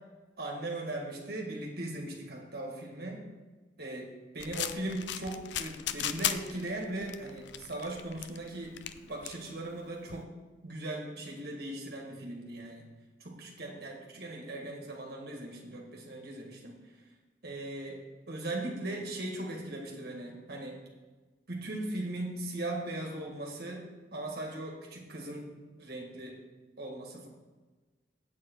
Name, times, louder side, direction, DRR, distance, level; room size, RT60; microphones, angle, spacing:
voice 1, 0.4-3.2 3.8-4.1 4.3-8.8 9.1-10.3 10.6-12.9 13.2-16.7 17.4-18.0 18.3-20.8 21.5-25.5 25.8-26.4 26.8-27.3, right 1 dB, 55° right, 0 dB, 1.8 m, -39 dB
sound 1, 4.4-10.2, left 10 dB, 65° left, 0.4 m, -38 dB
8.3 x 7.7 x 4.6 m, 1.3 s
head